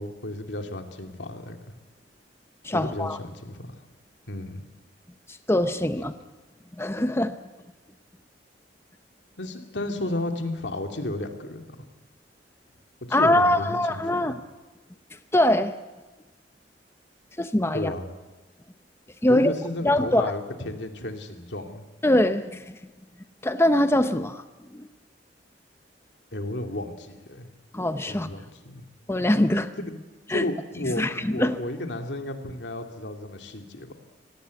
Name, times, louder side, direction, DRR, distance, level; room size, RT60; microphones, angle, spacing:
voice 1, 0.0-1.6 2.7-3.7 4.3-4.7 9.4-11.8 13.0-14.4 17.7-18.1 19.3-21.9 26.3-27.5 28.1-28.9 29.8-30.0 30.3-33.9, left 1 dB, 85° left, 5 dB, 2.6 m, -33 dB
voice 2, 2.6-3.2 5.5-6.1 6.8-7.4 13.1-14.3 15.3-15.7 17.4-17.9 19.2-19.5 19.8-20.3 22.0-22.8 23.4-24.4 24.7-24.9 27.7-28.3 29.1-29.7 30.3-30.4 31.0-31.6, left 1 dB, 15° left, 9 dB, 0.8 m, -22 dB
24.5 x 18.0 x 8.4 m, 1.2 s
head